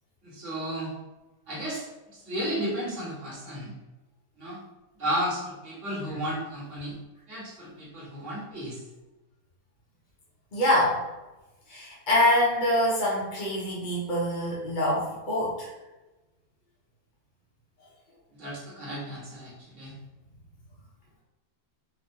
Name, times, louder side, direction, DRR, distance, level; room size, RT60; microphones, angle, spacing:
voice 1, 0.2-0.9 1.5-1.9 2.1-3.7 4.4-4.6 5.0-6.9 7.3-8.8 18.4-19.9, equal, 50° right, -7 dB, 1.6 m, -33 dB
voice 2, 10.5-11.0 11.7-15.7, left 1 dB, 50° left, -5 dB, 0.6 m, -25 dB
4.3 x 2.7 x 2.6 m, 1.1 s
omnidirectional pair, 1.8 m